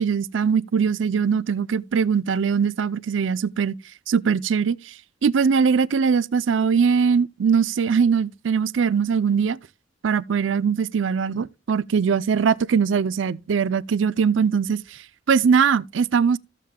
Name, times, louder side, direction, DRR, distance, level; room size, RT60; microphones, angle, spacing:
voice 1, 0.0-3.8 4.1-4.9 5.2-9.6 10.0-15.0 15.3-16.4, right 6 dB, 80° right, 0.5 m, -21 dB
14.5 x 7.5 x 2.2 m
head